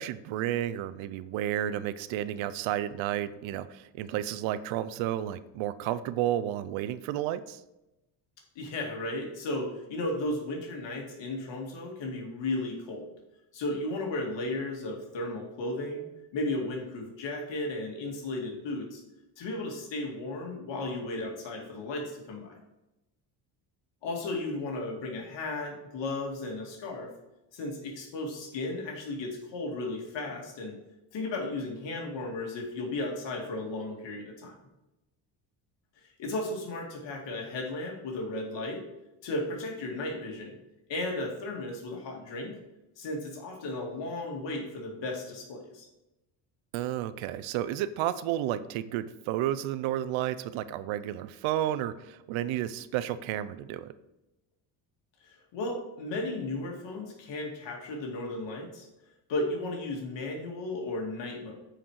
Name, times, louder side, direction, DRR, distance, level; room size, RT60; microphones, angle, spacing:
voice 1, 0.0-7.6 46.7-53.9, right 12 dB, 75° right, 15 dB, 0.7 m, -31 dB
voice 2, 8.6-13.1 13.5-16.1 16.3-19.0 19.4-22.6 24.0-27.1 27.5-30.7 31.1-34.5 36.2-38.8 39.2-40.6 40.9-42.5 43.0-45.9 55.2-58.9 59.3-61.6, left 2 dB, 65° left, 1 dB, 2.4 m, -35 dB
8.8 x 5.1 x 4.7 m, 0.95 s
supercardioid pair, 85°, 47 cm